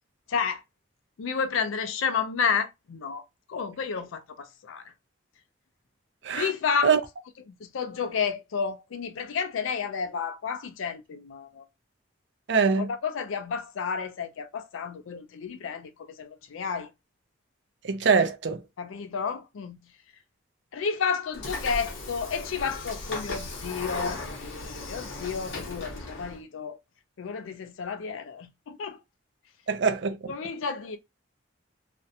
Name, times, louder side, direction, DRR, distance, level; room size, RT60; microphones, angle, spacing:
voice 1, 0.3-0.6 1.2-3.2 3.5-4.9 6.3-6.9 7.5-11.6 12.8-16.9 18.8-19.9 20.7-26.8 27.2-29.0 30.3-31.0, left 6 dB, 80° left, 0.4 m, -31 dB
voice 2, 12.5-12.9 17.8-18.6 29.7-30.3, right 5 dB, 65° right, 0.4 m, -23 dB
Train / Sliding door, 21.3-26.4, left 2 dB, 65° left, 0.8 m, -37 dB
2.5 x 2.1 x 2.7 m
head